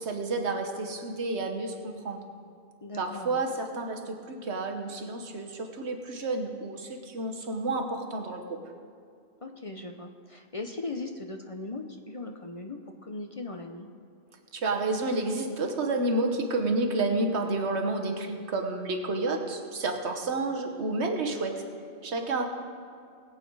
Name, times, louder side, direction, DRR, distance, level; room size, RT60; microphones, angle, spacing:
voice 1, 0.0-2.2 3.0-8.6 14.5-21.6 22.0-22.4, right 2 dB, 80° right, 3 dB, 1.5 m, -30 dB
voice 2, 2.8-3.4 9.4-13.9 19.1-19.4, left 2 dB, 35° left, 4 dB, 0.7 m, -39 dB
20.5 x 8.3 x 4.7 m, 2.3 s
omnidirectional pair, 1.1 m